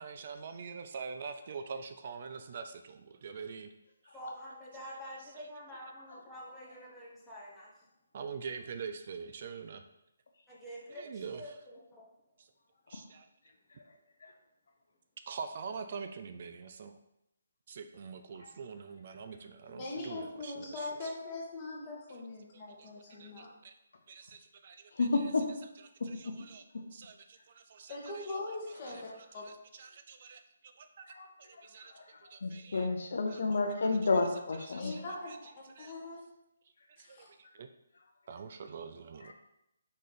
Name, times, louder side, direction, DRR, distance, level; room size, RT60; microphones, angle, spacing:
voice 1, 0.0-3.7 5.4-5.5 8.1-9.8 10.9-11.6 12.4-12.5 12.9-13.3 15.3-17.0 17.7-21.1 22.5-22.9 23.2-23.7 24.1-25.2 26.0-26.6 26.9-28.4 29.4-31.0 31.4-31.9 32.3-32.9 33.3-33.4 34.7-35.0 35.3-35.4 35.8-35.9 37.0-37.2 37.5-37.7 38.3-39.3, right 5 dB, 45° right, 8 dB, 0.3 m, -45 dB
voice 2, 4.1-7.7 10.5-12.0 19.7-19.8, equal, 5° left, -6 dB, 1.0 m, -47 dB
voice 3, 19.8-23.5 27.9-29.1 29.3-29.5 34.8-35.3 35.9-36.2 37.0-37.3, left 2 dB, 25° left, -3 dB, 1.2 m, -41 dB
voice 4, 24.9-25.5 28.7-29.1 31.1-31.3 31.9-35.2 39.2-39.3, left 3 dB, 65° left, 4 dB, 0.6 m, -31 dB
4.1 x 3.2 x 3.9 m, 0.84 s
hypercardioid pair, 155°, 0 cm